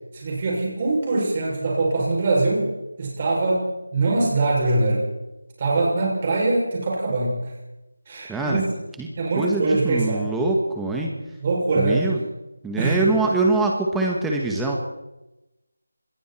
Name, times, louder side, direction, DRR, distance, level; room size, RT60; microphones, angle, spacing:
voice 1, 0.1-5.1 5.6-7.5 8.1-8.7 9.1-10.2 11.1-12.1 12.8-13.3, right 2 dB, 25° right, -3 dB, 7.2 m, -23 dB
voice 2, 8.3-8.6 9.0-9.1 9.3-11.1 11.7-12.2 12.6-14.8, right 2 dB, 5° right, 0 dB, 1.6 m, -23 dB
26.5 x 21.5 x 4.5 m, 0.97 s
figure-of-eight pair, 170°, 0 cm